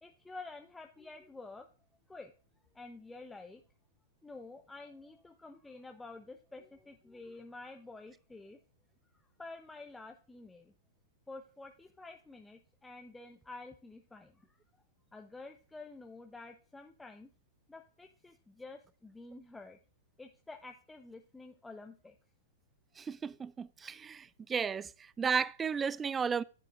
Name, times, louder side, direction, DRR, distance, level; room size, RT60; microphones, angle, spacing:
voice 1, 0.0-1.7 2.1-2.3 2.7-3.6 4.2-8.6 9.4-10.7 11.3-14.5 15.1-17.3 17.7-19.8 20.2-22.1, left 3 dB, 10° left, 0.8 m, -49 dB
voice 2, 23.0-24.9 25.2-26.4, right 6 dB, 15° right, 0.3 m, -33 dB
13.5 x 7.4 x 2.5 m
hypercardioid pair, 110°, 0 cm